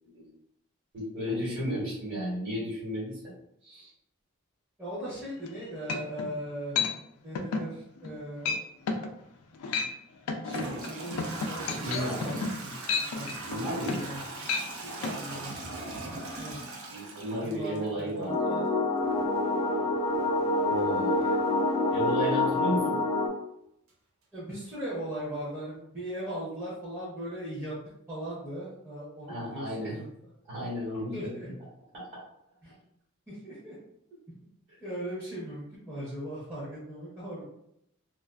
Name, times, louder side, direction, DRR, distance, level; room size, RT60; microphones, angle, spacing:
voice 1, 0.9-3.2 3.6-3.9 11.8-12.2 13.4-14.1 16.9-18.7 20.7-21.4 21.9-23.0 29.3-30.0 30.5-31.5 31.9-32.1, equal, 50° right, -8 dB, 1.2 m, -33 dB
voice 2, 4.8-6.8 7.2-8.6 10.4-13.3 13.9-14.2 14.8-15.5 16.4-16.6 17.4-18.7 24.3-27.7 28.1-30.3 31.1-31.5 32.6-32.7 33.3-33.8 34.8-37.4, right 1 dB, 10° right, -10 dB, 0.7 m, -38 dB
sound 1, 5.4-5.5 5.9-6.3 6.8-6.9 7.4-7.7 8.0-8.2 8.5-8.6 8.9-9.1 9.5-9.9 10.3-14.2 14.4-14.7 15.0-15.2, left 4 dB, 90° left, 0.4 m, -31 dB
Toilet flush / Trickle dribble, 9.7-9.8 10.4-18.2, right 2 dB, 70° right, 0.5 m, -40 dB
sound 2, 18.3-23.3, left 2 dB, 30° left, 0.6 m, -27 dB
2.4 x 2.4 x 2.3 m, 0.77 s
head